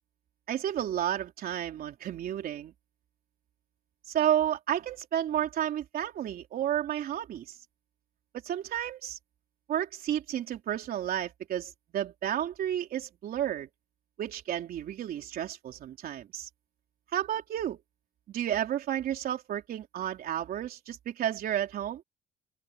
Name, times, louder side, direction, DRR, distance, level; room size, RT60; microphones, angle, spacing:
voice 1, 0.5-2.7 4.1-7.6 8.4-9.2 9.7-13.7 14.2-16.5 17.1-17.8 18.3-22.0, right 11 dB, 60° right, 3.7 m, -31 dB
open air
cardioid pair, 110°, 17 cm